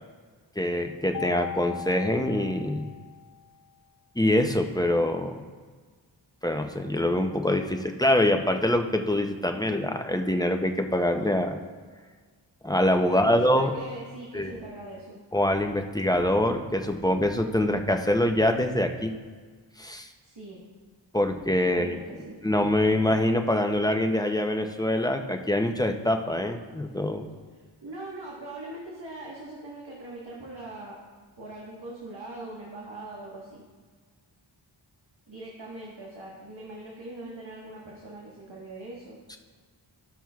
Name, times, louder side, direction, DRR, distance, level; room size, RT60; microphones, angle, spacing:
voice 1, 0.6-2.9 4.2-5.4 6.4-11.6 12.6-13.7 14.3-14.6 15.3-19.1 19.8-20.1 21.1-22.0 22.4-27.3, left 1 dB, 10° left, 4 dB, 0.5 m, -24 dB
Mallet percussion, 1.1-3.4, left 6 dB, 45° left, 0.7 m, -38 dB
voice 2, 13.1-15.2 20.2-20.6 21.5-22.4 27.8-31.0 31.4-33.6 35.3-39.2, right 2 dB, 60° right, -5 dB, 1.5 m, -41 dB
14.0 x 6.0 x 2.3 m, 1.5 s
wide cardioid pair, 70°, 47 cm